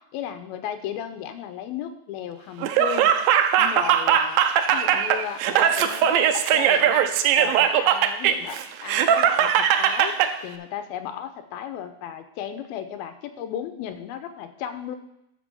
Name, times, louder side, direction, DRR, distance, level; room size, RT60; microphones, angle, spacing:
voice 1, 0.0-3.1 3.6-7.1 7.4-15.0, left 9 dB, 85° left, 8 dB, 2.6 m, -35 dB
Laughter, 2.6-10.3, right 9 dB, 80° right, 2.3 m, -20 dB
11.5 x 4.4 x 6.9 m, 0.79 s
omnidirectional pair, 4.3 m